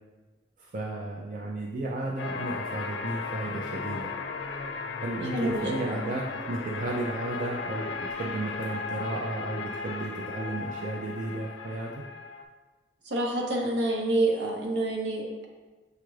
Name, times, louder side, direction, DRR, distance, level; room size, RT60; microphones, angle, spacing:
voice 1, 0.6-4.2 5.0-12.0, right 2 dB, 45° right, -2 dB, 0.3 m, -33 dB
sound 1, 2.2-12.4, left 4 dB, 85° left, 0.4 m, -36 dB
voice 2, 5.3-6.0 13.1-15.4, right 2 dB, 70° right, 0 dB, 0.7 m, -28 dB
6.6 x 2.4 x 3.1 m, 1.3 s
head